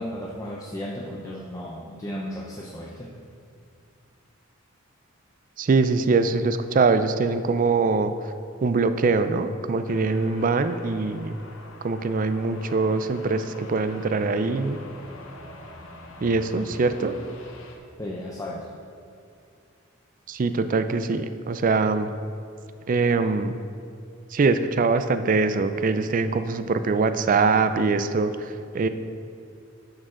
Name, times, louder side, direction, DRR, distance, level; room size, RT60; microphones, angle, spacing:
voice 1, 0.0-3.1 18.0-18.8, equal, 15° left, -3 dB, 0.6 m, -34 dB
voice 2, 5.6-8.3 8.6-11.4 11.8-14.8 16.2-17.2 20.3-22.1 22.9-23.6 24.3-28.9, right 4 dB, 40° right, 10 dB, 0.4 m, -23 dB
sound 1, 9.9-17.8, left 2 dB, 75° left, 1.0 m, -45 dB
11.0 x 6.4 x 3.8 m, 2.4 s
head